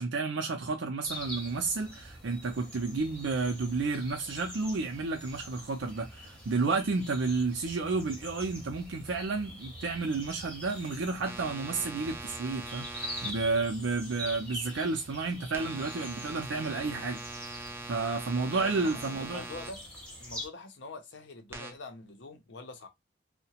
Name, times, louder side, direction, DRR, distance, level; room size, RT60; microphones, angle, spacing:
voice 1, 0.0-17.2 17.5-19.4, right 3 dB, 85° right, 0.5 m, -31 dB
sound 1, 1.0-20.5, equal, 5° left, 0.7 m, -45 dB
sound 2, 11.2-13.3 15.5-19.7 21.5-21.7, right 2 dB, 15° right, 0.3 m, -42 dB
voice 2, 18.6-19.8 20.2-22.9, left 3 dB, 75° left, 0.6 m, -45 dB
2.8 x 2.1 x 2.8 m
head